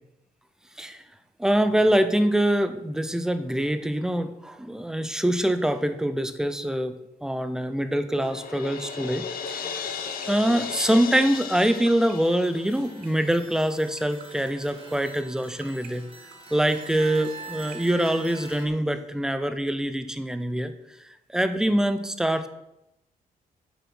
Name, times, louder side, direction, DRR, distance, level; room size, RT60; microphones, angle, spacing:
voice 1, 1.4-6.9 7.2-9.6 10.3-16.0 16.5-20.7 21.3-22.5, right 1 dB, 5° right, 10 dB, 0.6 m, -24 dB
Crash cymbal, 8.2-13.1, left 6 dB, 80° left, 1.2 m, -35 dB
sound 1, 9.3-18.9, right 10 dB, 70° right, 1.3 m, -46 dB
sound 2, 9.7-18.7, right 4 dB, 35° right, 2.0 m, -45 dB
9.2 x 7.1 x 6.1 m, 0.88 s
wide cardioid pair, 170°, 15 cm